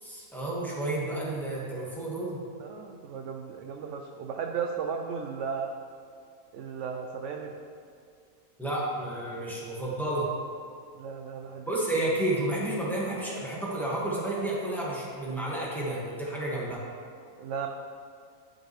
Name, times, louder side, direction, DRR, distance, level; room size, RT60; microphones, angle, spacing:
voice 1, 0.0-2.4 8.6-10.3 11.7-16.8, right 1 dB, ahead, -6 dB, 1.5 m, -31 dB
voice 2, 2.6-5.7 6.5-7.5 10.9-11.7 17.4-17.7, right 6 dB, 70° right, 3 dB, 0.7 m, -35 dB
11.5 x 5.2 x 3.2 m, 2.3 s
omnidirectional pair, 1.7 m